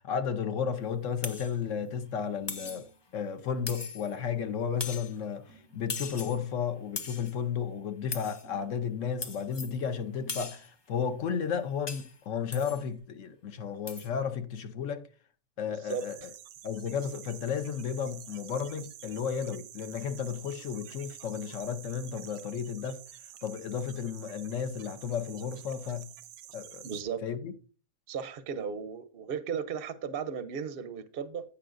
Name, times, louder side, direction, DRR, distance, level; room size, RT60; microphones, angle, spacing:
voice 1, 0.0-2.9 3.1-15.1 15.6-16.3 16.6-23.0 23.4-26.1 26.5-26.9 27.2-27.5, left 7 dB, 60° left, 1.0 m, -33 dB
sound 1, 1.2-1.6 2.5-2.9 3.7-4.2 4.8-5.2 5.9-6.4 7.0-7.4 8.1-8.5 9.2-9.8 10.3-10.7 11.9-12.2 12.5-12.8 13.9-14.1, left 4 dB, 40° left, 0.3 m, -39 dB
sound 2, 1.6-3.0 5.5-6.7 8.4-10.6 12.7-13.0, right 4 dB, 85° left, 3.7 m, -57 dB
voice 2, 15.7-16.0 26.8-27.2 28.1-31.4, right 7 dB, 50° right, 0.7 m, -35 dB
sound 3, 15.9-27.0, right 11 dB, 80° right, 1.1 m, -49 dB
15.5 x 5.5 x 2.5 m
omnidirectional pair, 1.6 m